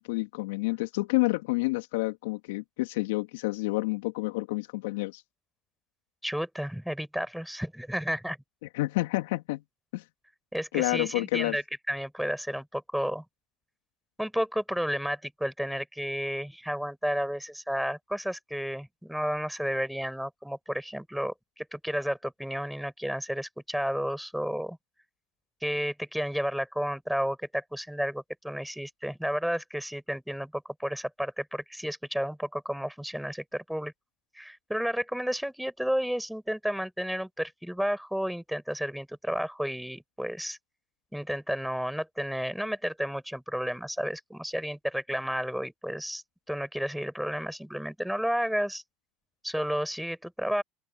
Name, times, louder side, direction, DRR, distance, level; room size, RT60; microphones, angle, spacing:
voice 1, 0.1-5.2 8.7-9.6 9.9-10.0 10.7-11.6, left 22 dB, 80° left, 2.9 m, -29 dB
voice 2, 6.2-8.4 10.5-13.2 14.2-24.8 25.6-33.9 34.3-40.6 41.1-46.2 46.5-48.8 49.4-50.6, equal, ahead, 6.3 m, -32 dB
open air
hypercardioid pair, 75°, 0 cm